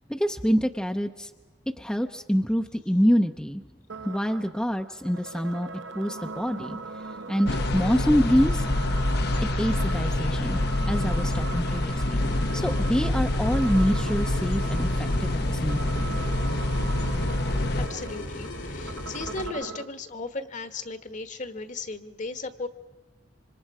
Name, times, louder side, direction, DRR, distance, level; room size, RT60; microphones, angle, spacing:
voice 1, 0.1-1.3 1.8-3.6 4.0-5.7 5.9-6.8 7.3-8.6 9.6-12.2 12.5-16.1, equal, 5° left, 5 dB, 0.7 m, -26 dB
sound 1, 3.9-19.9, right 4 dB, 85° right, 1.1 m, -39 dB
sound 2, 7.5-17.9, left 1 dB, 60° left, 1.0 m, -26 dB
sound 3, 12.2-19.5, left 1 dB, 85° left, 2.6 m, -37 dB
voice 2, 17.7-22.7, left 3 dB, 45° left, 9 dB, 1.3 m, -36 dB
26.5 x 25.5 x 4.9 m, 1.2 s
head